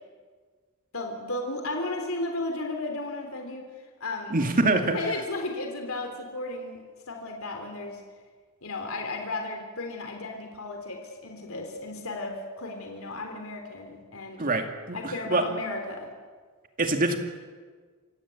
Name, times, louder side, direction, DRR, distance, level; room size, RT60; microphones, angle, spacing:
voice 1, 0.9-3.6 4.0-4.4 4.7-6.8 7.1-8.0 8.6-14.4 14.9-16.1, left 2 dB, 70° left, 3 dB, 3.5 m, -34 dB
voice 2, 4.3-5.0 14.4-15.5 16.8-17.2, right 2 dB, 40° right, 5 dB, 2.4 m, -25 dB
27.5 x 16.0 x 8.5 m, 1.5 s
head